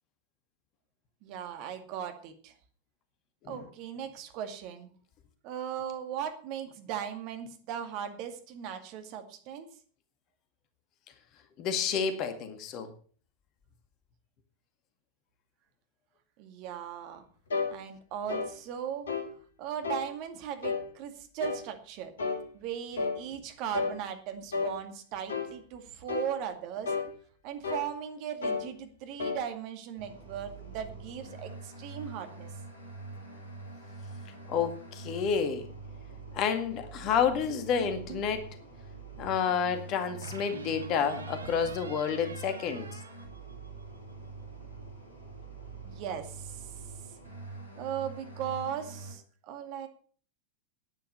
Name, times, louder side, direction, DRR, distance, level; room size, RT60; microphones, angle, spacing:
voice 1, 1.2-2.5 3.5-4.9 5.4-9.7 16.4-17.2 17.7-19.1 19.6-22.1 22.5-26.9 27.4-32.5 45.8-46.7 47.8-49.9, right 9 dB, 45° right, 7 dB, 2.1 m, -38 dB
voice 2, 11.6-12.9 34.5-35.7 36.3-38.5 39.2-43.0, left 7 dB, 35° left, 8 dB, 1.9 m, -30 dB
sound 1, 17.5-17.7 18.3-18.5 19.1-19.3 19.8-20.1 20.6-20.9 21.4-21.7 22.2-22.4 23.0-23.2 23.7-24.0 24.5-24.8 25.3-25.5 26.1-26.3 26.9-27.1 27.6-27.9 28.4-28.7 29.2-29.4, left 4 dB, 65° left, 2.0 m, -32 dB
sound 2, 30.0-49.1, right 3 dB, 90° right, 4.2 m, -45 dB
sound 3, 37.5-38.4 40.2-44.0, right 4 dB, 70° right, 1.4 m, -45 dB
10.0 x 10.0 x 6.6 m, 0.43 s
figure-of-eight pair, 90°, 0 cm